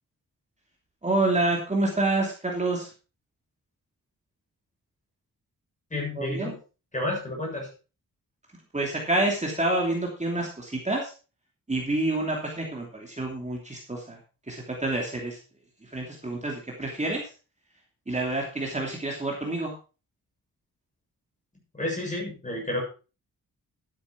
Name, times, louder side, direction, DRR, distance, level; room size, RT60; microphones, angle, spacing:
voice 1, 1.0-2.9 6.2-6.6 8.7-11.1 11.7-14.2 14.5-15.4 15.8-17.3 18.1-19.7, right 2 dB, 20° right, -1 dB, 2.9 m, -28 dB
voice 2, 5.9-6.6 6.9-7.7 21.7-22.8, left 1 dB, 20° left, -1 dB, 7.1 m, -30 dB
12.0 x 9.7 x 4.5 m, 0.34 s
wide cardioid pair, 130°, 34 cm